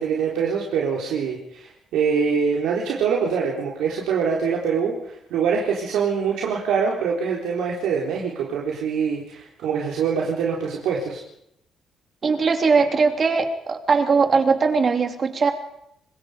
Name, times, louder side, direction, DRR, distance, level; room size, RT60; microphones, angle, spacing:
voice 1, 0.0-11.2, right 6 dB, 90° right, -3 dB, 4.1 m, -24 dB
voice 2, 12.2-15.5, right 4 dB, 40° right, 5 dB, 3.2 m, -20 dB
26.5 x 21.0 x 5.2 m, 0.78 s
cardioid pair, 90°, 0 cm